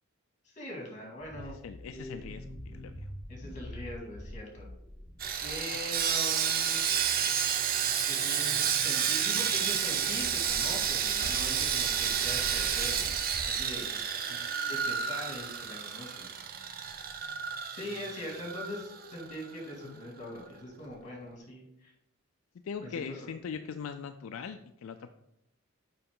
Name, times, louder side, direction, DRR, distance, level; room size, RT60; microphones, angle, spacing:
voice 1, 0.5-1.6 3.3-4.7 5.4-6.8 8.1-13.1 13.5-14.0 14.7-16.5 17.7-21.9 22.8-23.0, left 1 dB, 35° left, 0 dB, 2.2 m, -42 dB
sound 1, 1.2-5.9, left 1 dB, 20° left, 1.7 m, -45 dB
voice 2, 1.4-3.1 11.3-11.4 14.3-14.5 19.8-20.0 22.6-25.1, left 6 dB, 70° left, 8 dB, 0.4 m, -41 dB
Sawing, 5.2-19.5 19.7-19.9 20.4-20.5, right 8 dB, 45° right, 0.6 m, -30 dB
6.8 x 5.5 x 3.7 m, 0.79 s
head